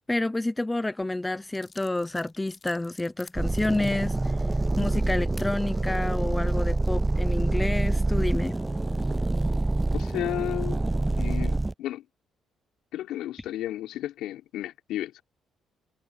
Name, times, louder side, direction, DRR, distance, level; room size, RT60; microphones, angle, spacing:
voice 1, 0.1-4.3 4.8-8.6, left 2 dB, 10° left, 0.8 m, -29 dB
sound 1, 1.0-1.1 1.5-5.5 6.1-6.4, left 4 dB, 25° left, 6.4 m, -51 dB
sound 2, 3.4-11.7, right 2 dB, 10° right, 0.3 m, -26 dB
voice 2, 9.9-10.9 11.2-12.1 12.9-15.2, left 13 dB, 80° left, 5.4 m, -33 dB
cardioid pair, 140°, 0 cm